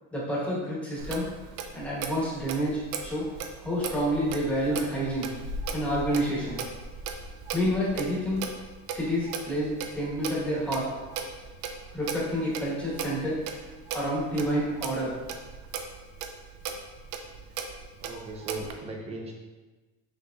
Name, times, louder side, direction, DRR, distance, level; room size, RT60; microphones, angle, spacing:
voice 1, 0.1-1.3 1.7-3.3 3.6-5.3 5.7-6.6 7.5-8.4 8.9-10.9 11.9-15.1, equal, 5° left, -7 dB, 1.0 m, -29 dB
Clock, 1.0-18.7, right 5 dB, 80° right, 0.6 m, -38 dB
voice 2, 18.0-19.3, right 3 dB, 20° right, 1 dB, 0.5 m, -37 dB
6.0 x 2.9 x 2.5 m, 1.2 s
cardioid pair, 170°, 31 cm